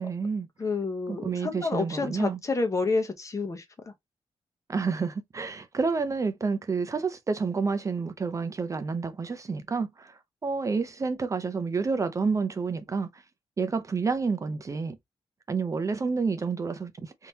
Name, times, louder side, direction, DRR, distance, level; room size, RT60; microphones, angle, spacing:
voice 1, 0.0-0.5 1.1-2.4 4.7-13.2 13.6-15.0 15.5-17.3, right 4 dB, 30° right, 0.5 m, -29 dB
voice 2, 0.6-3.6, left 3 dB, 30° left, 0.8 m, -29 dB
3.6 x 2.7 x 2.7 m
wide cardioid pair, 140°, 10 cm